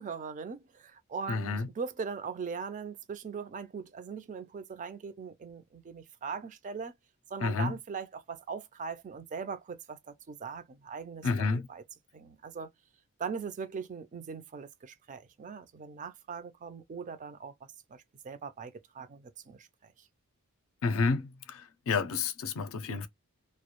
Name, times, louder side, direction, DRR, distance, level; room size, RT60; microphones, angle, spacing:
voice 1, 0.0-6.9 7.3-11.8 12.1-12.7 13.2-17.5 17.9-20.1, right 5 dB, 35° right, 0.4 m, -40 dB
voice 2, 1.3-1.7 7.4-7.8 11.2-11.7 20.8-23.1, left 4 dB, 65° left, 0.5 m, -30 dB
2.3 x 2.0 x 2.9 m
head